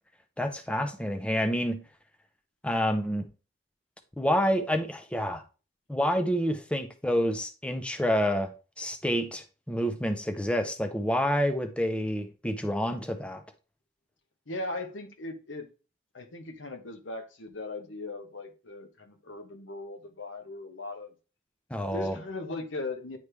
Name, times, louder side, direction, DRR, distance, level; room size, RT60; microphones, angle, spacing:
voice 1, 0.4-1.8 2.6-3.2 4.2-5.4 5.9-8.5 8.8-13.4 21.7-22.2, equal, 5° left, 0.5 m, -28 dB
voice 2, 14.5-15.7 16.1-21.1 21.9-23.2, left 2 dB, 90° left, 1.0 m, -38 dB
9.4 x 3.2 x 3.3 m
head